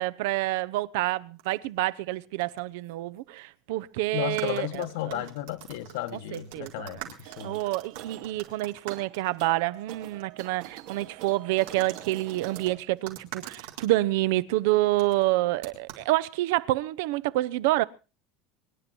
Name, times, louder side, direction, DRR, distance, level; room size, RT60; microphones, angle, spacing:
voice 1, 0.0-5.2 6.3-7.1 7.4-17.8, right 17 dB, 70° right, 0.8 m, -28 dB
sound 1, 1.4-1.7 2.4-2.6 2.9-3.0 4.2-9.9 10.2-10.3 11.7-13.9 15.0-15.2 15.6-16.1, right 12 dB, 90° right, 4.5 m, -44 dB
voice 2, 4.1-7.6, left 15 dB, 80° left, 1.6 m, -34 dB
sound 2, 7.2-12.8, right 13 dB, 55° right, 1.6 m, -45 dB
23.5 x 11.0 x 4.4 m
cardioid pair, 175°, 0 cm